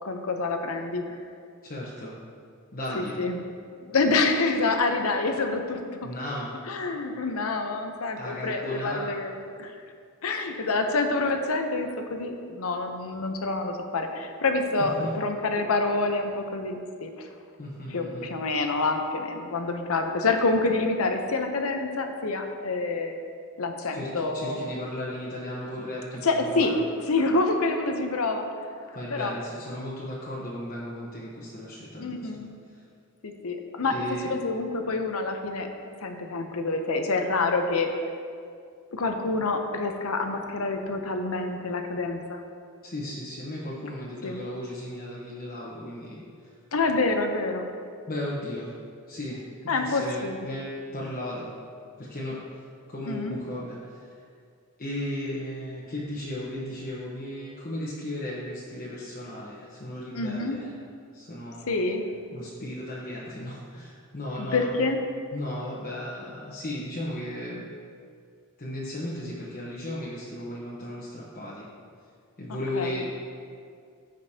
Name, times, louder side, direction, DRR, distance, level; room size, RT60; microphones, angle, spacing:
voice 1, 0.0-1.2 2.9-3.4 3.8-6.1 6.7-9.3 9.6-9.7 10.2-17.3 17.9-23.2 23.6-24.7 26.2-26.7 27.0-28.7 29.1-29.3 32.0-32.4 33.2-34.0 34.2-35.7 36.0-37.9 38.9-42.4 44.2-44.4 46.7-47.7 49.7-50.4 53.0-53.4 60.1-60.6 61.7-62.0 64.4-65.0 72.5-73.0, left 3 dB, 70° left, 5 dB, 0.7 m, -27 dB
voice 2, 1.6-2.1 2.7-3.2 6.0-6.6 8.2-9.2 14.8-15.1 17.6-18.3 23.9-26.8 28.9-32.3 32.7-32.8 33.8-34.3 42.8-46.5 48.1-48.7 49.1-49.4 49.8-51.5 52.0-52.6 52.9-54.1 54.8-60.7 61.1-61.8 62.3-64.8 65.3-67.6 68.6-71.7 72.4-73.1, left 1 dB, 40° left, -7 dB, 1.0 m, -35 dB
14.5 x 5.2 x 2.8 m, 2.3 s
head